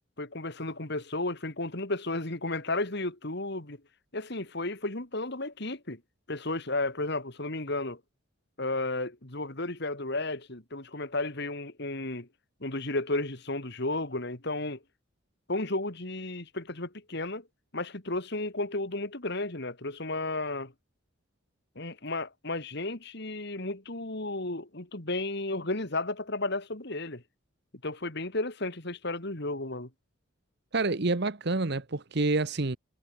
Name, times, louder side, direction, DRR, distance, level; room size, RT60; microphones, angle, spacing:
voice 1, 0.2-3.8 4.1-6.0 6.3-8.0 8.6-12.3 12.6-14.8 15.5-17.5 17.7-20.7 21.7-27.2 27.8-29.9, left 2 dB, 55° left, 3.2 m, -33 dB
voice 2, 30.7-32.8, right 3 dB, 55° right, 1.1 m, -28 dB
head